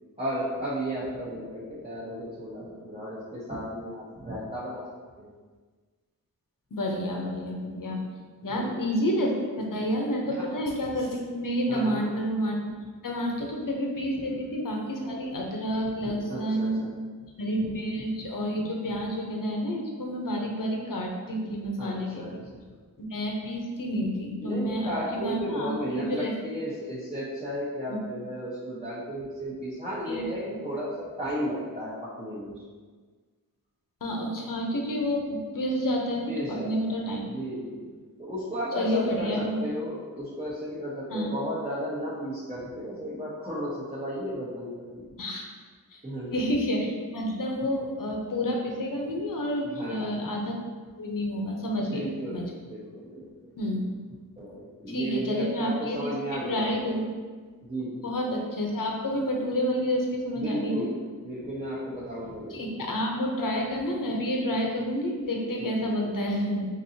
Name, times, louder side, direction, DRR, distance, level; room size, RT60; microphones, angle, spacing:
voice 1, 0.2-4.9 5.2-5.3 8.4-8.7 10.3-10.4 11.7-12.1 16.0-16.9 21.8-22.7 24.4-32.6 36.3-37.9 38.2-45.1 46.0-46.4 49.7-50.2 51.8-53.5 54.4-57.0 57.6-58.1 60.4-62.7 65.6-65.9, equal, 20° right, -10 dB, 1.0 m, -34 dB
voice 2, 6.7-8.0 8.4-12.7 13.0-16.9 17.4-22.4 23.0-26.3 27.9-28.0 30.1-30.6 34.0-37.3 38.8-39.6 41.1-41.4 45.2-45.4 45.9-46.0 46.3-50.6 51.0-52.4 53.6-53.8 54.9-57.1 58.0-60.9 62.5-66.7, equal, 60° left, 0 dB, 0.8 m, -29 dB
4.5 x 2.7 x 2.7 m, 1.5 s
cardioid pair, 45°, 37 cm